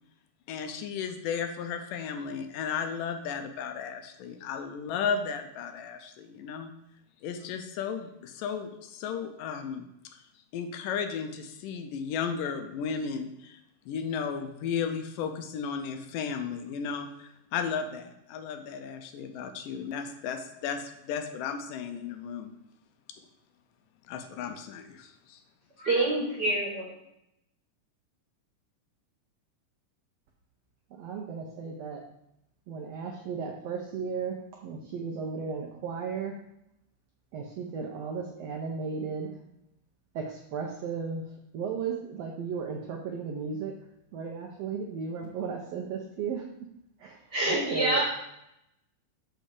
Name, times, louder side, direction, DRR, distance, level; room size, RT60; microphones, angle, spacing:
voice 1, 0.5-6.7 7.2-9.9 10.5-22.5 24.1-25.4, left 6 dB, 85° left, 6 dB, 2.3 m, -34 dB
voice 2, 25.8-26.9 47.3-48.0, right 2 dB, 45° right, -3 dB, 1.4 m, -26 dB
voice 3, 30.9-32.0 32.7-36.3 37.3-39.3 40.1-41.2 41.5-43.8 44.1-46.4 47.0-47.2 47.5-48.0, right 5 dB, 80° right, 0 dB, 1.4 m, -35 dB
6.4 x 5.7 x 4.9 m, 0.81 s
omnidirectional pair, 3.8 m